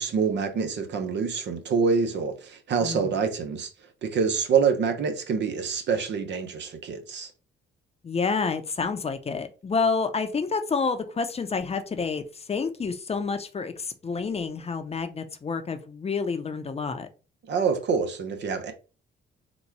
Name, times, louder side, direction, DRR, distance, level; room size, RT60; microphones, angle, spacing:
voice 1, 0.0-3.7 4.0-7.3 17.5-18.7, right 5 dB, 65° right, 0.8 m, -26 dB
voice 2, 2.8-3.1 8.0-17.1, left 5 dB, 30° left, 0.7 m, -29 dB
4.0 x 2.3 x 4.6 m
cardioid pair, 90°, 20 cm